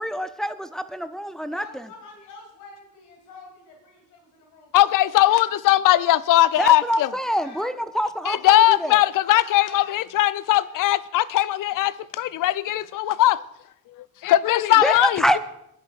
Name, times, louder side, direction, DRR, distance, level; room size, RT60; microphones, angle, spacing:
voice 1, 0.0-1.6 6.6-9.0 14.8-15.4, equal, ahead, 0.6 m, -25 dB
voice 2, 1.4-4.7 5.1-5.5 6.8-7.9 9.1-9.9, left 3 dB, 75° left, 3.1 m, -46 dB
voice 3, 4.7-7.1 8.3-13.4 14.2-15.2, left 14 dB, 45° left, 0.6 m, -19 dB
22.5 x 10.0 x 2.5 m
figure-of-eight pair, 45°, 47 cm